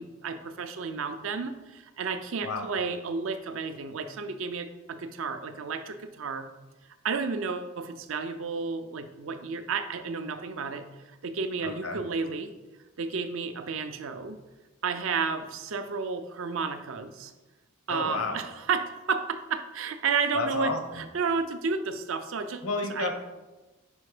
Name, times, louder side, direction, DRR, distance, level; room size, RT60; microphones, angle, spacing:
voice 1, 0.0-6.5 7.0-10.8 11.2-12.5 13.0-14.4 14.8-17.3 17.9-22.6 22.9-23.1, right 5 dB, 65° right, 9 dB, 0.5 m, -32 dB
voice 2, 11.6-12.0 17.9-18.4 20.3-21.0 22.6-23.1, left 3 dB, 80° left, 4 dB, 1.0 m, -31 dB
5.4 x 4.2 x 4.9 m, 1.1 s
head